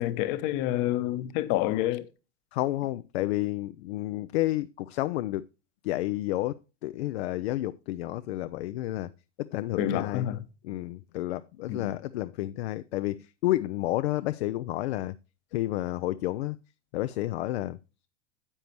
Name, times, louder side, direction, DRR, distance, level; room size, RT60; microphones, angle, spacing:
voice 1, 0.0-2.1 9.8-10.5 11.7-11.9, left 13 dB, 45° left, 1.0 m, -28 dB
voice 2, 2.5-5.4 5.8-6.6 6.8-9.1 9.4-10.3 10.6-13.2 13.4-15.1 15.5-16.6 16.9-17.8, left 16 dB, 60° left, 0.5 m, -30 dB
10.0 x 7.9 x 3.0 m
hypercardioid pair, 95°, 35 cm